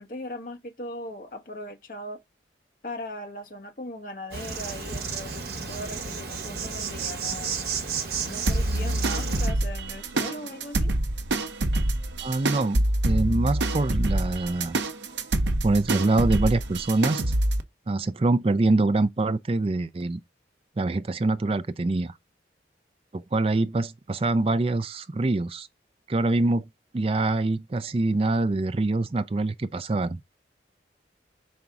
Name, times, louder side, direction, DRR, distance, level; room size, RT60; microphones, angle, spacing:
voice 1, 0.0-2.2 2.8-7.5 8.2-10.9, left 1 dB, 50° left, 1.3 m, -39 dB
Insect, 4.3-9.5, right 5 dB, 60° right, 1.1 m, -32 dB
sound 1, 8.5-17.6, right 1 dB, 85° right, 0.8 m, -26 dB
voice 2, 12.2-14.8 15.6-17.2 17.9-20.2 20.8-22.1 23.1-25.7 26.1-26.6 26.9-30.2, right 2 dB, 30° right, 0.4 m, -25 dB
5.3 x 3.6 x 5.8 m
head